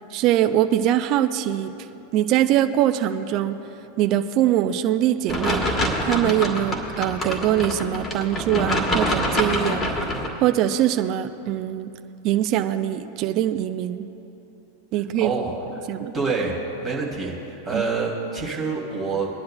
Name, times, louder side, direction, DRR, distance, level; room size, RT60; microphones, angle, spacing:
voice 1, 0.1-1.7 2.1-3.6 4.0-5.6 6.0-10.0 10.4-11.9 12.2-14.1 14.9-15.3 15.9-16.2 17.7-17.8, right 12 dB, 40° right, 10 dB, 0.4 m, -22 dB
sound 1, 5.3-10.3, equal, 15° left, 1.5 m, -25 dB
voice 2, 15.2-15.5 15.8-16.6 16.8-19.3, right 4 dB, 20° right, -3 dB, 2.6 m, -27 dB
22.5 x 10.5 x 2.2 m, 3.0 s
figure-of-eight pair, 90°, 0 cm